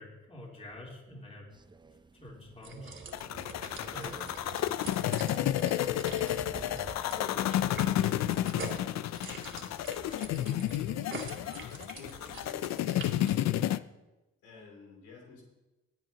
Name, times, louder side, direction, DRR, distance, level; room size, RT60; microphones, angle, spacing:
voice 1, 0.0-1.5 2.1-2.9 3.9-4.2, left 1 dB, 20° left, -3 dB, 3.6 m, -46 dB
Crow, 1.5-7.9, right 4 dB, 15° right, 0.5 m, -53 dB
sound 1, 2.6-13.5, right 4 dB, 40° right, 2.3 m, -45 dB
sound 2, 3.1-13.8, left 12 dB, 65° left, 0.5 m, -31 dB
voice 2, 7.1-8.5 9.4-10.6 11.4-12.9 14.4-15.4, left 4 dB, 90° left, -2 dB, 3.1 m, -50 dB
21.5 x 7.6 x 2.9 m, 1.1 s
cardioid pair, 90°, 30 cm